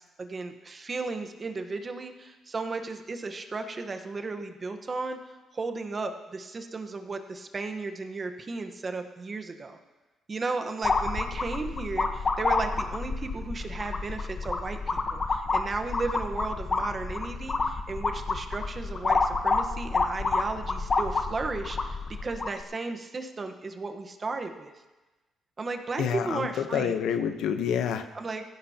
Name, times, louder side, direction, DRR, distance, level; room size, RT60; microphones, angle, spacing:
voice 1, 0.0-5.2 5.5-9.8 10.3-24.7 25.6-26.9 28.1-28.4, right 3 dB, 35° right, 5 dB, 1.2 m, -35 dB
sound 1, 10.8-22.6, left 3 dB, 40° left, 1.1 m, -29 dB
voice 2, 26.0-28.0, left 8 dB, 85° left, 8 dB, 1.0 m, -28 dB
17.5 x 15.5 x 2.9 m, 1.2 s
cardioid pair, 90°, 0 cm